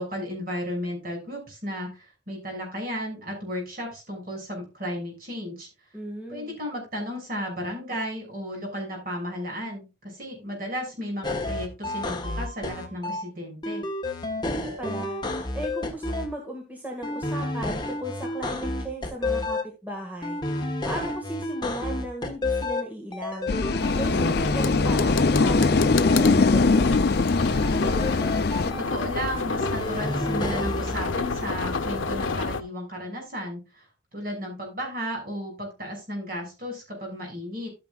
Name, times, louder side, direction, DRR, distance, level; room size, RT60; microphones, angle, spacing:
voice 1, 0.0-5.7 6.3-13.9 28.6-37.7, equal, 45° right, 0 dB, 6.1 m, -34 dB
voice 2, 5.9-6.6 14.4-15.2 15.5-20.4 20.8-23.5 23.9-27.1, right 1 dB, 10° right, -1 dB, 1.9 m, -36 dB
sound 1, 11.2-13.2 13.6-16.3 17.0-19.6 20.2-22.8 23.1-26.0 27.5-29.0 29.6-31.0, left 2 dB, 25° left, 1.4 m, -30 dB
sound 2, 23.5-28.7, left 3 dB, 55° left, 0.5 m, -22 dB
sound 3, 23.8-32.6, left 3 dB, 90° left, 0.8 m, -29 dB
13.0 x 9.4 x 2.4 m, 0.29 s
head